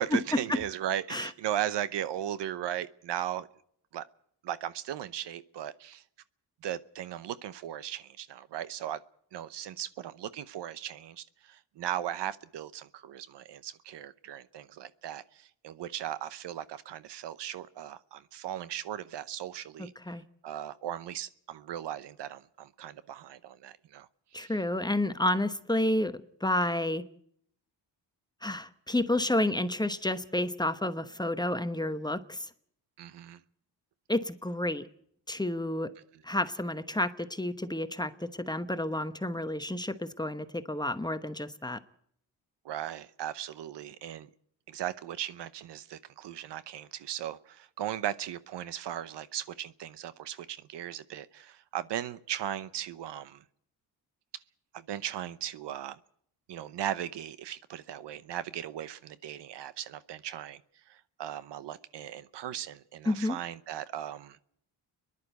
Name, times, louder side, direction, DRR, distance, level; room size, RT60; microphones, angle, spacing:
voice 1, 0.0-3.5 3.9-4.0 4.4-6.0 6.6-9.0 9.3-19.9 20.4-24.1 24.4-24.6 33.0-33.4 42.6-44.3 44.7-53.4 54.7-56.0 56.5-60.6 60.9-64.4, right 11 dB, 70° right, 0.9 m, -37 dB
voice 2, 24.3-27.0 28.4-32.5 34.1-34.9 35.3-35.9 36.2-41.8 63.1-63.4, left 1 dB, 10° left, 1.0 m, -30 dB
30.0 x 11.0 x 8.0 m
cardioid pair, 80°, 43 cm